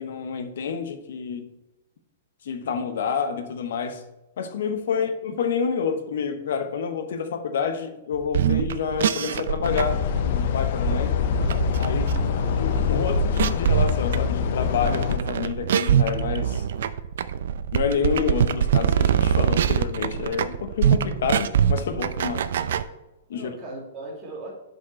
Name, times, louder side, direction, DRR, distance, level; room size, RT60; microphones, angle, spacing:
voice 1, 0.0-1.5 2.4-4.0 4.4-11.1 11.8-12.1 12.6-16.6 17.7-22.5 23.3-23.5, left 6 dB, 65° left, 0.9 m, -28 dB
sound 1, 8.2-22.8, right 8 dB, 65° right, 0.4 m, -24 dB
sound 2, 9.6-15.2, left 9 dB, 45° left, 0.5 m, -25 dB
voice 2, 12.0-12.5 23.3-24.5, right 2 dB, 20° right, 2.2 m, -39 dB
6.2 x 5.2 x 4.4 m
hypercardioid pair, 170°, 0 cm